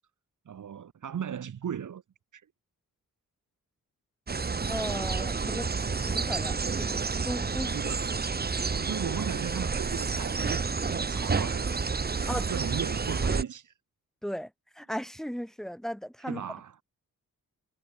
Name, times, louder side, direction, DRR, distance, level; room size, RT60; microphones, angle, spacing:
voice 1, 0.5-2.0 2.3-2.4 7.6-8.3 8.6-11.8 12.2-13.7 16.2-16.8, right 8 dB, 65° right, 1.9 m, -37 dB
sound 1, 4.3-13.4, right 4 dB, 30° right, 1.6 m, -30 dB
voice 2, 4.7-7.8 12.3-12.5 14.2-14.5 14.8-16.5, equal, ahead, 5.9 m, -36 dB
wide cardioid pair, 140°, 34 cm